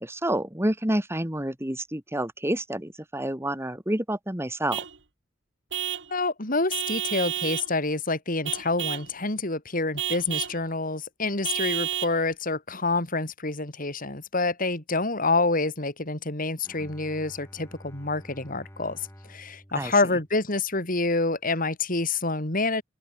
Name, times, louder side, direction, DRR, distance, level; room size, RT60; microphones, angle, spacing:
voice 1, 0.0-4.8 19.7-19.9, right 1 dB, 15° right, 2.3 m, -28 dB
Vehicle horn car horn honking / Truck, 4.7-5.0 5.7-6.1 6.7-7.7 8.5-9.1 10.0-10.6 11.5-12.2, right 11 dB, 65° right, 2.6 m, -30 dB
voice 2, 6.1-19.0 19.3-22.8, left 3 dB, 45° left, 3.8 m, -27 dB
Bowed string instrument, 16.6-20.8, equal, 15° left, 7.5 m, -49 dB
open air
head